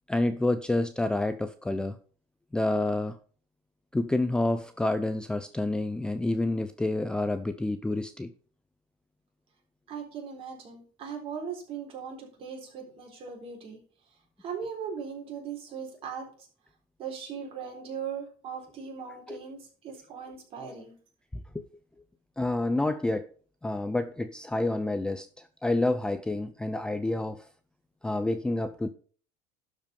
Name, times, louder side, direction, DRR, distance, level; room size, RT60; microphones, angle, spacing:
voice 1, 0.1-2.0 2.5-3.2 3.9-8.3 19.3-19.4 21.3-21.6 22.4-23.3 23.6-27.5 28.0-28.9, left 2 dB, 5° left, 10 dB, 0.5 m, -28 dB
voice 2, 9.9-13.8 14.4-16.3 17.0-20.9, right 6 dB, 45° right, 0 dB, 3.9 m, -39 dB
12.0 x 5.2 x 5.3 m, 0.42 s
cardioid pair, 150°, 14 cm